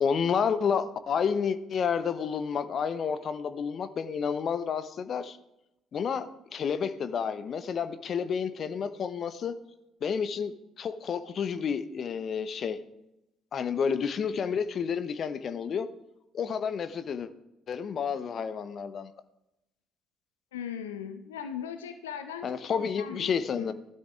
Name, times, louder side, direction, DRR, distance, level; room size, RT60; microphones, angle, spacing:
voice 1, 0.0-5.4 5.9-9.5 10.0-12.8 13.5-15.9 16.3-17.3 17.7-19.1 22.4-23.7, left 6 dB, 50° left, 11 dB, 0.8 m, -30 dB
voice 2, 20.5-23.7, left 8 dB, 80° left, 8 dB, 0.6 m, -39 dB
19.0 x 12.5 x 2.5 m, 0.90 s
figure-of-eight pair, 50°, 0 cm